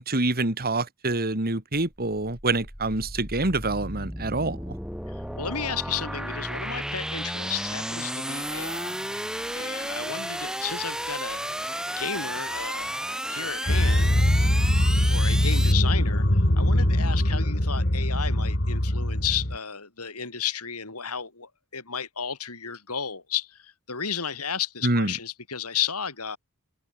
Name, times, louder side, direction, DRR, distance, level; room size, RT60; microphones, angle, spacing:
voice 1, 0.0-4.8 14.4-14.7 24.8-25.1, right 2 dB, 45° right, 2.9 m, -26 dB
sound 1, 2.2-15.7, right 1 dB, 5° right, 3.8 m, -33 dB
voice 2, 5.1-9.0 9.5-11.5 12.0-12.9 13.3-14.1 15.1-26.4, left 7 dB, 80° left, 6.1 m, -33 dB
sound 2, 13.7-19.6, left 1 dB, 50° left, 3.5 m, -22 dB
head